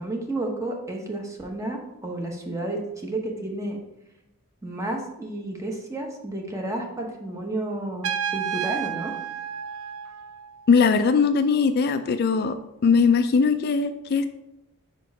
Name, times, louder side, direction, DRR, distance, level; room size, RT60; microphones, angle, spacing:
voice 1, 0.0-3.8 4.6-9.1, right 2 dB, 15° right, 1 dB, 0.8 m, -31 dB
Trumpet, 8.0-10.7, right 9 dB, 65° right, 0.4 m, -31 dB
voice 2, 10.7-12.6 12.8-14.3, left 5 dB, 45° left, 9 dB, 0.3 m, -20 dB
5.2 x 4.3 x 4.7 m, 0.89 s
head